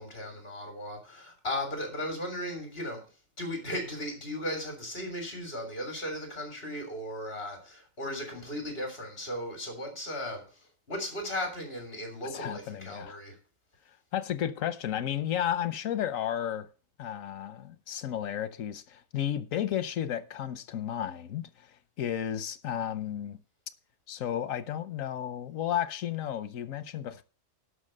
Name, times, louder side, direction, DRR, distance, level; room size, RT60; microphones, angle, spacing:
voice 1, 0.0-3.0 3.4-13.4, left 1 dB, 45° left, 3.8 m, -36 dB
voice 2, 12.2-13.2 14.1-16.7 17.0-23.4 24.1-27.2, left 10 dB, 85° left, 1.2 m, -33 dB
11.5 x 5.8 x 6.5 m
omnidirectional pair, 1.3 m